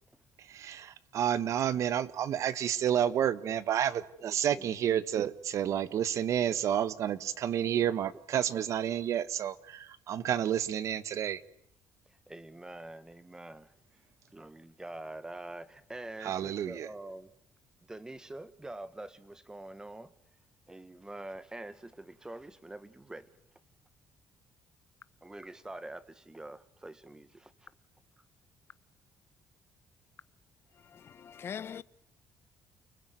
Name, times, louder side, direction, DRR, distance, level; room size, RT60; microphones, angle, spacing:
voice 1, 0.4-11.4 16.2-16.9, right 10 dB, 60° right, 1.4 m, -30 dB
voice 2, 4.2-4.7 12.3-13.7 14.3-17.3 17.9-20.1 20.7-23.3 25.2-27.7, right 2 dB, 10° right, 1.8 m, -45 dB
voice 3, 30.7-31.8, left 7 dB, 40° left, 1.1 m, -42 dB
30.0 x 20.5 x 9.6 m
cardioid pair, 120°, 6 cm